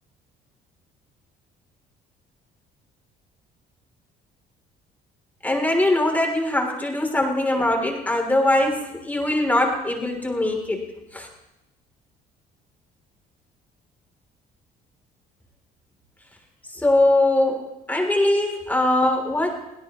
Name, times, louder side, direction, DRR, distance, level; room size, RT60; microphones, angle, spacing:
voice 1, 5.4-10.8 11.1-11.3 16.8-17.6 17.9-19.5, left 1 dB, 10° left, 1 dB, 3.3 m, -21 dB
22.5 x 16.5 x 3.1 m, 0.92 s
cardioid pair, 110°, 17 cm